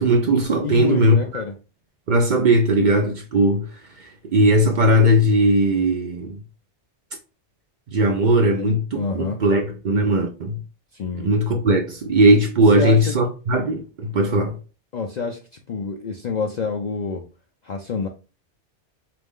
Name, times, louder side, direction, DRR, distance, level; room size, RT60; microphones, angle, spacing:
voice 1, 0.0-1.4 2.1-3.6 4.0-6.4 7.9-10.6 11.2-14.6, right 1 dB, 60° right, 0.5 m, -18 dB
voice 2, 0.6-1.5 8.5-9.4 10.9-11.3 12.7-13.1 14.9-17.2 17.6-18.1, left 4 dB, 60° left, 0.5 m, -27 dB
4.0 x 2.6 x 3.5 m
omnidirectional pair, 1.2 m